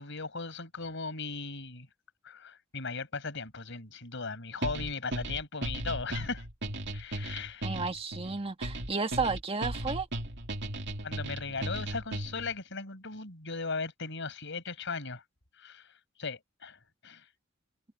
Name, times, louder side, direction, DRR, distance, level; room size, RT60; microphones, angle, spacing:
voice 1, 0.0-1.9 2.2-6.4 6.9-7.7 11.0-15.2 15.6-15.9 16.2-17.3, left 4 dB, 60° left, 5.9 m, -38 dB
sound 1, 4.6-12.5, right 1 dB, 55° right, 2.6 m, -36 dB
voice 2, 7.6-10.1, right 4 dB, 30° right, 1.7 m, -32 dB
head